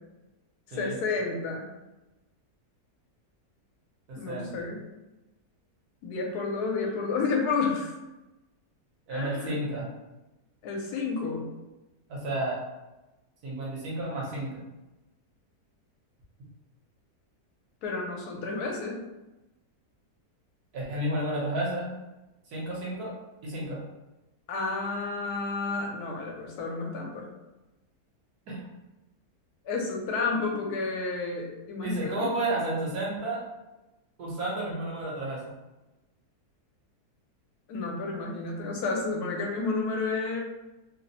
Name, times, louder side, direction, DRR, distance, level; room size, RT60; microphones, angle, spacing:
voice 1, 0.7-1.7 4.2-4.8 6.0-7.9 9.1-9.6 10.6-11.5 17.8-19.0 24.5-27.3 29.6-32.3 37.7-40.4, left 4 dB, 75° left, 0 dB, 1.1 m, -31 dB
voice 2, 4.1-4.5 9.1-9.9 12.1-12.6 13.4-14.6 20.7-21.9 22.5-23.1 23.4-23.8 28.5-28.6 31.8-33.4 34.2-35.5, right 1 dB, 70° right, -4 dB, 1.3 m, -31 dB
3.0 x 2.0 x 2.6 m, 1.0 s
omnidirectional pair, 1.8 m